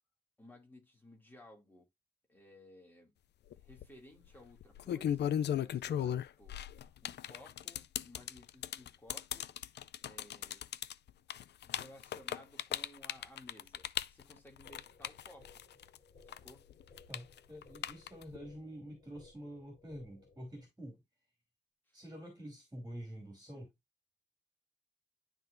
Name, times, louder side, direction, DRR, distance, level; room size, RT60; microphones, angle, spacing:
voice 1, 0.4-1.9 2.3-3.1 3.6-9.5 10.0-10.7 11.6-15.6 16.2-16.7 21.9-22.0 23.5-23.6, left 1 dB, 10° left, 2.5 m, -58 dB
sound 1, 3.5-3.9 4.6-16.0 16.3-18.4, left 10 dB, 80° left, 0.4 m, -37 dB
sound 2, 14.6-20.6, left 4 dB, 45° left, 3.0 m, -62 dB
voice 2, 17.1-21.0 21.9-23.7, equal, 15° right, 2.9 m, -47 dB
11.5 x 3.9 x 2.6 m
wide cardioid pair, 180°, 17 cm